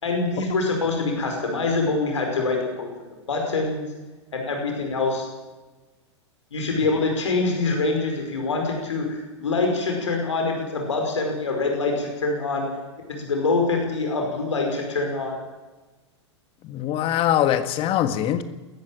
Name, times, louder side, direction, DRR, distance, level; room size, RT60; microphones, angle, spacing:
voice 1, 0.0-2.9 3.3-3.8 4.3-5.3 6.5-12.7 13.1-15.3, left 3 dB, 80° left, 5.3 m, -25 dB
voice 2, 16.6-18.4, left 11 dB, 35° left, 1.6 m, -22 dB
20.5 x 14.0 x 8.9 m
figure-of-eight pair, 100°, 15 cm